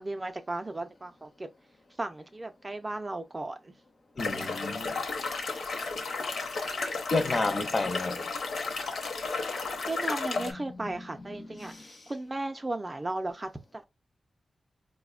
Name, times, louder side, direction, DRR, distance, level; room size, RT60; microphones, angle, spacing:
voice 1, 0.0-1.5 2.0-3.8 9.9-13.8, right 2 dB, 20° right, 0.4 m, -35 dB
sound 1, 4.2-10.5, left 4 dB, 60° left, 0.8 m, -33 dB
voice 2, 4.2-5.0 7.1-8.3 10.4-12.0, left 3 dB, 30° left, 0.5 m, -32 dB
4.8 x 2.1 x 2.4 m
wide cardioid pair, 180°, 0 cm